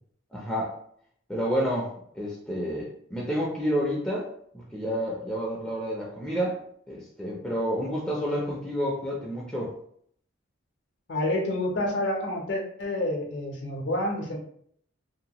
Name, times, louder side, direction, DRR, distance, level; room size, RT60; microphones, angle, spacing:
voice 1, 0.3-0.7 1.3-4.3 4.5-6.6 6.9-9.7, equal, 5° left, -5 dB, 0.4 m, -29 dB
voice 2, 11.1-14.4, left 1 dB, 55° left, 0 dB, 0.6 m, -28 dB
2.7 x 2.1 x 2.9 m, 0.64 s
head